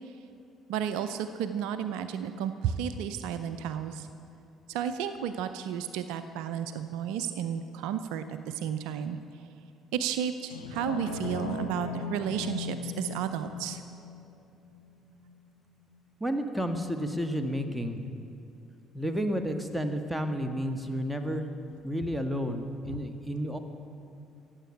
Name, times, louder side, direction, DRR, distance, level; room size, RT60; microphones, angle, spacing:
voice 1, 0.7-4.1 4.7-9.2 9.9-13.8, right 8 dB, 70° right, 10 dB, 0.5 m, -32 dB
sound 1, 10.5-15.5 16.0-16.1, left 5 dB, 85° left, 1.1 m, -38 dB
voice 2, 16.2-18.0 18.9-21.5 21.8-23.6, equal, 5° right, 5 dB, 1.5 m, -31 dB
15.5 x 8.0 x 8.7 m, 2.6 s
hypercardioid pair, 50°, 0 cm